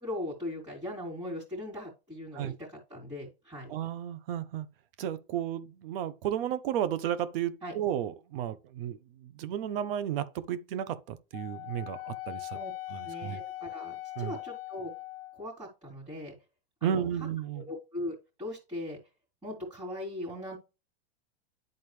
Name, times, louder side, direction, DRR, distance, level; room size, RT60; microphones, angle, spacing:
voice 1, 0.0-3.7 7.6-7.7 12.5-12.7 13.0-14.9 15.3-16.3 16.8-17.1 17.5-19.0 19.4-20.6, left 1 dB, 15° right, 3.1 m, -39 dB
voice 2, 3.7-4.7 5.0-12.6 12.9-13.4 14.2-14.4 16.8-17.7, right 10 dB, 60° right, 0.9 m, -33 dB
Wind instrument woodwind instrument, 11.3-15.5, left 17 dB, 65° left, 0.6 m, -41 dB
10.5 x 4.0 x 3.2 m
hypercardioid pair, 130°, 32 cm